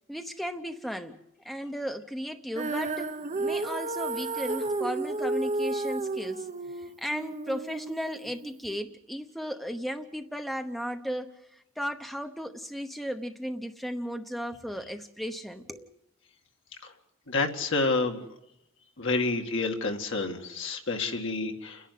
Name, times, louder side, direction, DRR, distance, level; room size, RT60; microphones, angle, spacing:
voice 1, 0.1-1.2 1.4-6.5 6.8-15.9, equal, ahead, 6 dB, 0.9 m, -35 dB
Female singing, 2.6-8.8, right 2 dB, 35° right, 0.8 m, -32 dB
voice 2, 17.3-18.2 19.0-21.9, left 3 dB, 65° left, 3 dB, 2.2 m, -29 dB
30.0 x 11.0 x 9.4 m, 0.88 s
head